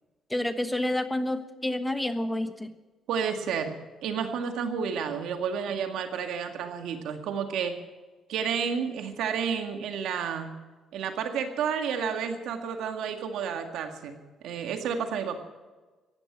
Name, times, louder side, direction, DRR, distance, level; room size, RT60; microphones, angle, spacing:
voice 1, 0.3-2.7, left 1 dB, 10° left, 10 dB, 1.2 m, -29 dB
voice 2, 3.1-7.8 8.3-10.5 10.9-15.4, right 7 dB, 85° right, 5 dB, 2.0 m, -31 dB
15.5 x 11.0 x 7.5 m, 1.3 s
cardioid pair, 90°, 0 cm